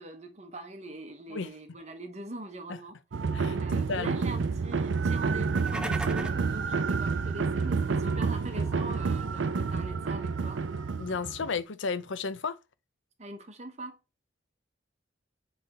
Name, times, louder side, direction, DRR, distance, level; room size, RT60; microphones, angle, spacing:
voice 1, 0.0-3.0 3.6-10.6 13.2-14.0, right 2 dB, 35° right, 0.8 m, -42 dB
sound 1, 3.1-11.6, right 4 dB, 75° right, 0.5 m, -29 dB
voice 2, 3.3-4.2 11.0-12.6, left 4 dB, 75° left, 0.6 m, -33 dB
sound 2, 5.4-6.5, right 1 dB, 5° right, 0.4 m, -36 dB
sound 3, 5.6-10.9, right 3 dB, 25° left, 2.2 m, -51 dB
7.8 x 3.3 x 4.1 m
head